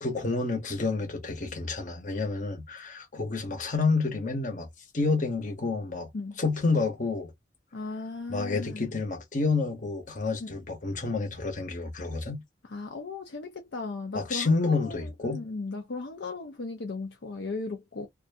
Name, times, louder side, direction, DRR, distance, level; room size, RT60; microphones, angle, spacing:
voice 1, 0.0-4.7 4.9-6.1 6.4-7.3 8.3-12.4 14.1-15.4, left 3 dB, 40° left, 1.0 m, -29 dB
voice 2, 7.7-8.9 10.4-10.5 12.7-18.1, left 3 dB, 65° left, 0.5 m, -36 dB
2.6 x 2.3 x 2.6 m
head